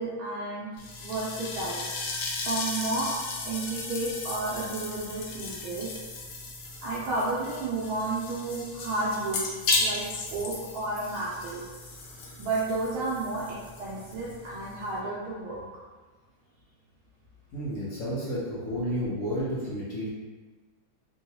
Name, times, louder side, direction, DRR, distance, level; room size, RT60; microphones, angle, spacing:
voice 1, 0.0-1.8 2.5-3.2 3.4-6.0 6.8-9.4 9.8-11.7 12.4-15.6, right 2 dB, 85° right, -6 dB, 1.4 m, -32 dB
sound 1, 0.8-15.0, left 3 dB, 90° left, 1.5 m, -35 dB
voice 2, 17.5-20.1, equal, 60° left, -8 dB, 1.0 m, -31 dB
3.7 x 2.3 x 2.8 m, 1.3 s
omnidirectional pair, 2.2 m